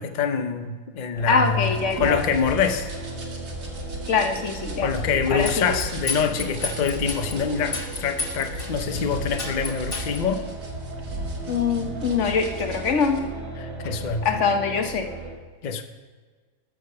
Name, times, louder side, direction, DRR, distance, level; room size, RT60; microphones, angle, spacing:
voice 1, 0.0-2.9 4.8-10.4 13.6-14.3 15.6-15.8, left 6 dB, 80° left, 7 dB, 0.4 m, -25 dB
sound 1, 1.1-15.3, right 3 dB, 85° right, 2.9 m, -36 dB
voice 2, 1.3-2.2 4.1-4.9 5.3-5.7 11.5-13.2 14.2-15.1, left 5 dB, 50° left, 6 dB, 1.2 m, -23 dB
sound 2, 1.5-13.2, right 1 dB, 65° right, 2.2 m, -37 dB
sound 3, 5.4-7.3 7.7-8.7 9.0-9.1 9.4-10.2, left 3 dB, 25° left, 1.0 m, -30 dB
13.5 x 5.3 x 6.7 m, 1.5 s
omnidirectional pair, 1.8 m